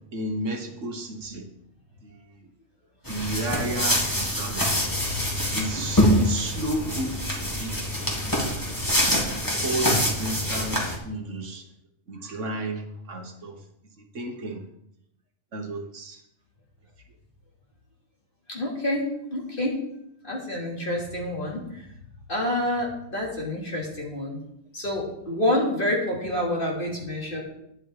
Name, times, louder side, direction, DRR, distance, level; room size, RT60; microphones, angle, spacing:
voice 1, 0.1-1.4 2.0-2.1 3.1-4.8 5.5-7.9 8.8-9.0 9.6-11.6 12.1-13.6 14.1-14.6 15.5-16.2, right 1 dB, 65° right, 4 dB, 1.5 m, -32 dB
sound 1, 3.1-11.0, equal, 15° left, 2.2 m, -25 dB
voice 2, 18.5-19.8 20.2-21.9 22.3-24.4 24.7-27.4, left 1 dB, 40° left, -3 dB, 3.1 m, -28 dB
10.5 x 8.5 x 4.7 m, 0.78 s
omnidirectional pair, 1.4 m